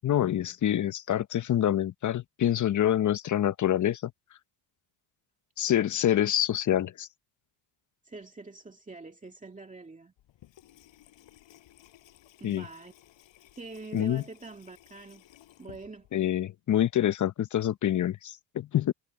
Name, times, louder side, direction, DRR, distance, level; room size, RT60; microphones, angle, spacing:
voice 1, 0.0-4.1 5.6-7.1 12.4-12.6 13.9-14.2 16.1-18.9, left 11 dB, 40° left, 0.8 m, -26 dB
voice 2, 8.0-10.1 12.4-12.9 13.6-15.2 15.6-16.1, right 3 dB, 15° right, 2.4 m, -45 dB
Water tap faucet / Sink (filling or washing), 10.2-16.4, left 14 dB, 70° left, 5.1 m, -57 dB
cardioid pair, 105°, 46 cm